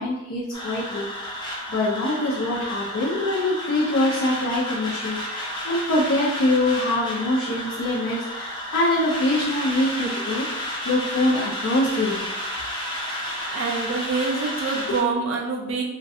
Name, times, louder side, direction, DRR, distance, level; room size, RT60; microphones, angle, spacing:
voice 1, 0.0-12.3, left 1 dB, 85° left, -6 dB, 0.5 m, -24 dB
sound 1, 0.5-15.0, equal, 20° left, 0.4 m, -31 dB
voice 2, 13.4-15.8, right 4 dB, 70° right, 0 dB, 0.3 m, -26 dB
2.3 x 2.2 x 2.6 m, 0.90 s
head